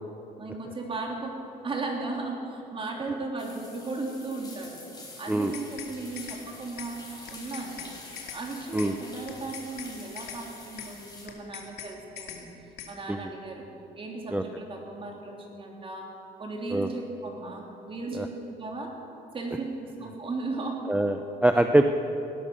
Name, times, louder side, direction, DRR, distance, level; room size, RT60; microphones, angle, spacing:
voice 1, 0.4-1.3 1.6-4.8 5.2-8.0 8.3-12.5 12.9-13.7 13.9-16.1 16.4-18.9 19.3-20.8, right 3 dB, 30° right, 0 dB, 3.2 m, -36 dB
sound 1, 3.4-11.3, left 2 dB, 25° left, 4.0 m, -47 dB
sound 2, 5.3-5.9 6.2-6.4 6.8-6.9 7.3-8.4 8.8-8.9 9.3-9.9 10.2-10.4 10.8-10.9 11.3-11.9 12.2-12.4 12.8-12.9, left 9 dB, 80° left, 2.0 m, -41 dB
voice 2, 20.9-21.8, right 1 dB, 10° right, 6 dB, 0.6 m, -23 dB
18.0 x 11.5 x 6.5 m, 2.9 s
cardioid pair, 110°, 17 cm